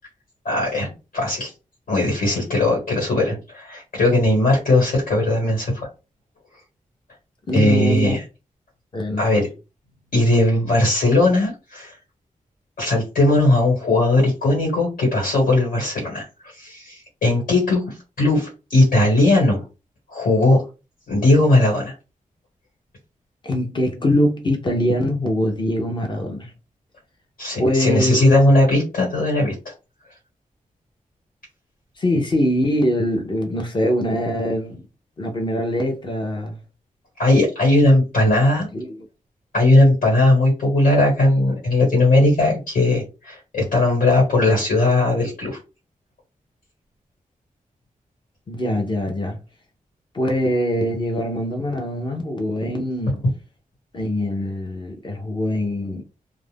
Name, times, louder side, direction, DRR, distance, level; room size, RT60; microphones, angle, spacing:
voice 1, 0.4-1.5 1.9-5.9 7.5-8.2 9.2-9.5 10.1-11.9 12.8-16.2 16.6-17.8 18.2-19.6 20.1-20.6 21.1-21.9 27.4-29.7 37.2-38.7 39.5-45.6, left 1 dB, 85° left, 1.4 m, -18 dB
voice 2, 7.5-8.2 8.9-9.4 23.4-26.5 27.6-28.4 32.0-34.8 35.2-36.6 38.5-39.1 48.5-49.4 50.1-53.2 53.9-56.0, left 1 dB, 35° left, 0.5 m, -23 dB
2.4 x 2.1 x 3.3 m
wide cardioid pair, 170°, 14 cm